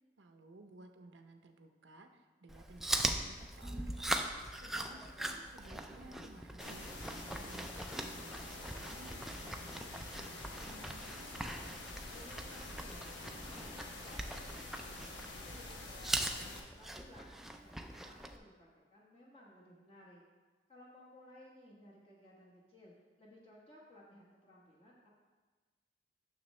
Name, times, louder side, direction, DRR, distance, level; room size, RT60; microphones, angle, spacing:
voice 1, 0.2-4.2 4.6-11.4, right 2 dB, 80° right, 5 dB, 0.6 m, -57 dB
Chewing mastication, 2.5-18.4, right 1 dB, ahead, 0.3 m, -41 dB
voice 2, 4.7-5.4 12.1-17.3 17.6-20.2 20.7-22.9 23.2-25.1, left 1 dB, 30° left, -5 dB, 1.2 m, -59 dB
sound 1, 6.6-16.6, left 2 dB, 80° left, 1.0 m, -48 dB
9.6 x 6.5 x 3.2 m, 1.3 s
head